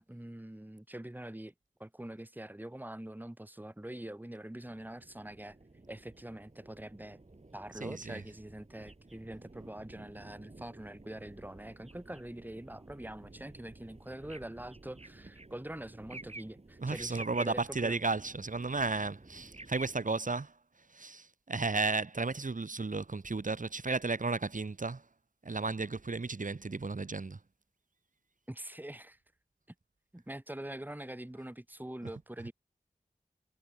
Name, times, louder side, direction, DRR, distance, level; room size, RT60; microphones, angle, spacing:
voice 1, 0.0-1.5 1.8-5.6 5.9-7.2 7.5-18.0 28.5-29.2 30.1-32.5, right 1 dB, 10° right, 1.9 m, -44 dB
sound 1, 4.7-20.0, right 2 dB, 45° right, 4.9 m, -52 dB
voice 2, 7.8-8.2 16.8-20.6 20.9-25.0 25.4-27.4, right 3 dB, 65° right, 1.7 m, -34 dB
wide cardioid pair, 55°, 15 cm